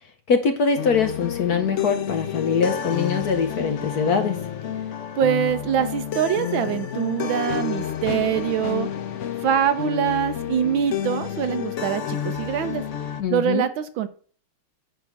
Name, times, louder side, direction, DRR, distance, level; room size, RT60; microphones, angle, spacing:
voice 1, 0.3-4.4 13.2-13.7, left 5 dB, 60° left, 7 dB, 1.1 m, -23 dB
sound 1, 0.8-13.2, left 9 dB, 90° left, 0.6 m, -30 dB
voice 2, 5.2-8.9 9.4-12.8 13.3-14.1, right 9 dB, 70° right, 10 dB, 1.5 m, -24 dB
9.8 x 3.7 x 7.2 m, 0.43 s
omnidirectional pair, 2.3 m